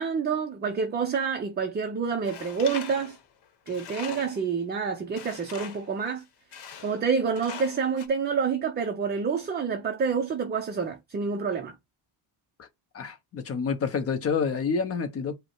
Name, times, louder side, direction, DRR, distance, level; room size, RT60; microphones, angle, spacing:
voice 1, 0.0-3.2 3.7-6.2 6.8-11.7, right 5 dB, 20° right, 0.5 m, -28 dB
Tools, 2.2-4.5 5.2-5.9 6.5-7.1 7.3-8.1, left 8 dB, 55° left, 1.0 m, -42 dB
voice 2, 12.9-15.3, left 5 dB, 30° left, 0.7 m, -28 dB
5.2 x 2.2 x 4.4 m
cardioid pair, 160°, 47 cm